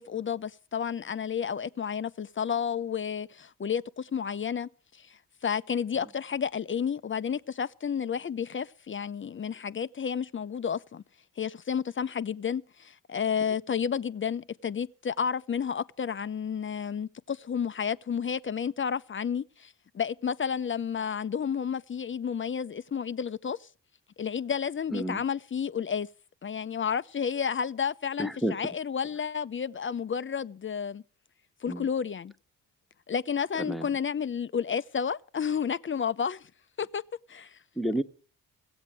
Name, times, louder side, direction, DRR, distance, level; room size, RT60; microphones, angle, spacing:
voice 1, 0.0-11.0 11.4-23.7 24.2-26.1 26.4-31.0 31.6-32.3 33.1-36.5 36.8-37.0 37.3-37.6, left 7 dB, 30° left, 0.6 m, -31 dB
voice 2, 24.9-25.2 28.2-28.6 31.7-31.9 33.6-33.9 37.7-38.0, right 1 dB, ahead, 1.3 m, -30 dB
15.5 x 7.9 x 7.6 m
hypercardioid pair, 50°, 39 cm